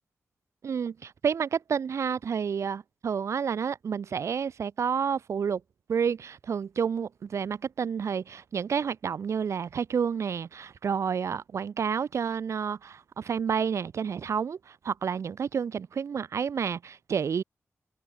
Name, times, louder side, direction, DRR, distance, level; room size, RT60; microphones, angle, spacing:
voice 1, 0.6-5.6 5.9-17.4, right 7 dB, 75° right, 1.6 m, -30 dB
wide cardioid pair, 105°, 5 cm